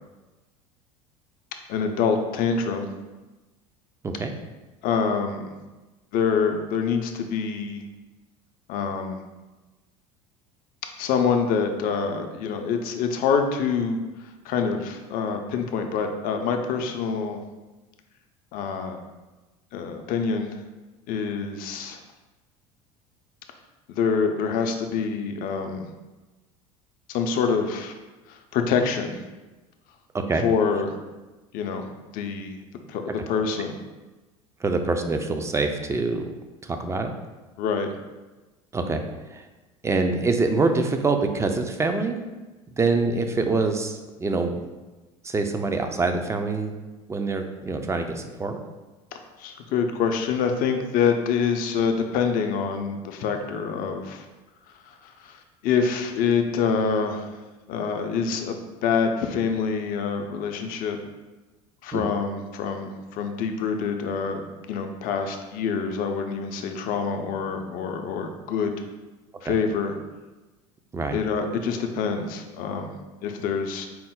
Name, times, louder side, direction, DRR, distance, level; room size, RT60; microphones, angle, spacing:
voice 1, 1.7-2.9 4.8-5.5 6.1-7.8 8.7-9.2 11.0-14.0 14.4-17.4 18.5-19.0 19.7-20.6 21.1-22.0 23.9-25.9 27.1-27.9 28.3-29.2 30.4-31.0 31.5-31.9 32.1-32.6 32.9-33.7 37.6-37.9 49.1-54.3 54.9-57.4 57.7-61.0 61.8-68.7 69.4-69.9 71.1-72.9 73.2-73.9, left 6 dB, 55° left, 5 dB, 0.5 m, -26 dB
voice 2, 30.1-30.4 34.6-36.3 36.6-37.1 38.7-39.4 39.8-42.2 42.8-44.5 45.2-46.7 47.1-48.6 61.9-62.1 69.5-69.6 70.9-71.2, right 3 dB, 15° right, 6 dB, 0.4 m, -25 dB
4.3 x 2.0 x 3.7 m, 1.2 s
hypercardioid pair, 75°, 18 cm